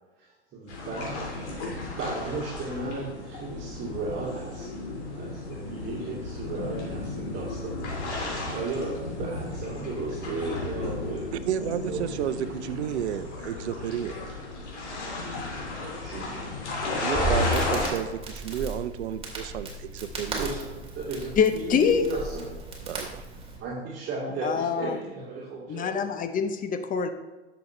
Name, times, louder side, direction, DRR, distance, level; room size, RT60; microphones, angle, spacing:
voice 1, 0.2-4.7 5.1-7.8 8.1-11.3 11.9-12.0 16.0-16.4 20.3-21.3 21.6-22.5 23.6-26.1, right 3 dB, 35° right, -5 dB, 2.4 m, -35 dB
sound 1, 0.7-17.9, left 2 dB, 80° left, 3.0 m, -34 dB
voice 2, 11.3-14.2 17.0-20.5 22.9-23.2, right 10 dB, 75° right, 12 dB, 0.7 m, -32 dB
Crackle, 16.9-23.6, right 1 dB, 15° right, 2.4 m, -34 dB
voice 3, 21.4-22.1 24.2-25.0 25.7-27.1, left 6 dB, 25° left, 9 dB, 0.7 m, -25 dB
10.5 x 7.0 x 3.2 m, 1.2 s
hypercardioid pair, 95°, 34 cm